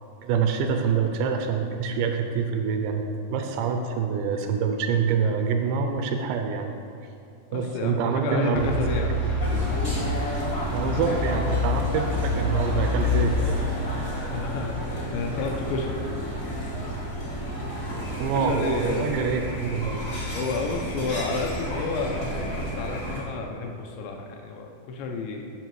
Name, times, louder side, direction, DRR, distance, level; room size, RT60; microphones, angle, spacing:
voice 1, 0.2-6.7 7.5-8.7 9.2-9.4 10.7-13.4 18.2-20.0, right 6 dB, 85° right, 5 dB, 2.7 m, -26 dB
voice 2, 7.5-9.1 14.3-16.0 18.4-19.3 20.3-25.5, left 3 dB, 80° left, 2 dB, 2.8 m, -31 dB
sound 1, 8.5-13.6, left 2 dB, 30° left, 0.5 m, -27 dB
sound 2, 9.4-23.2, equal, 55° left, 0.9 m, -31 dB
10.5 x 5.9 x 4.7 m, 2.5 s
omnidirectional pair, 5.3 m